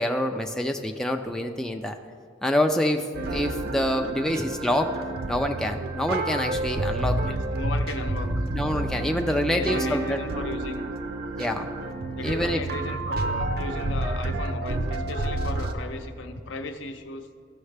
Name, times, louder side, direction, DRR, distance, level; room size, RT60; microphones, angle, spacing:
voice 1, 0.0-2.0 2.4-3.0 3.3-4.9 5.3-7.2 8.5-10.2 11.4-11.7 12.2-12.6, left 1 dB, 5° left, 3 dB, 0.3 m, -26 dB
sound 1, 3.1-15.7, right 2 dB, 50° right, 0.6 m, -29 dB
voice 2, 7.2-8.4 9.3-10.9 12.2-17.3, left 2 dB, 70° left, 6 dB, 0.7 m, -36 dB
14.5 x 6.3 x 3.3 m, 2.2 s
head